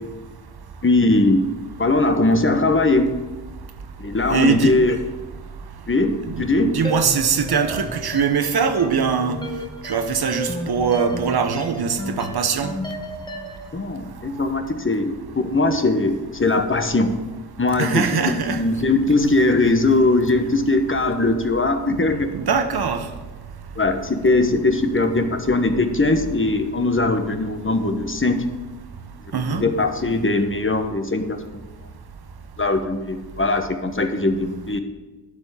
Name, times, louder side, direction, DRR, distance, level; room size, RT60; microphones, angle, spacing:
voice 1, 0.8-1.5 1.8-3.2 4.0-5.0 5.9-6.7 13.7-15.2 15.4-17.1 17.6-22.3 23.8-28.4 29.5-31.2 32.6-34.8, left 2 dB, 30° left, 7 dB, 1.2 m, -20 dB
voice 2, 4.3-4.8 6.3-9.4 9.8-12.7 17.8-18.6 22.3-23.0 29.3-29.6, right 6 dB, 65° right, 8 dB, 1.1 m, -22 dB
sound 1, 6.8-13.7, equal, 10° left, 1.3 m, -33 dB
11.5 x 4.4 x 7.1 m, 1.3 s
cardioid pair, 45°, 42 cm